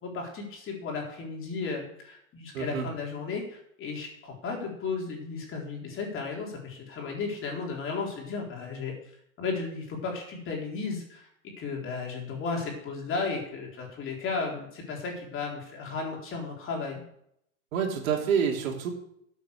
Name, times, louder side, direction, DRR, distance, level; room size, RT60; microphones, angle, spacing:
voice 1, 0.0-8.9 9.4-11.3 11.6-17.0, left 4 dB, 30° left, 0 dB, 4.1 m, -34 dB
voice 2, 2.5-2.9 17.7-18.9, right 7 dB, 75° right, 2 dB, 3.0 m, -27 dB
12.0 x 7.5 x 6.7 m, 0.74 s
supercardioid pair, 130°, 42 cm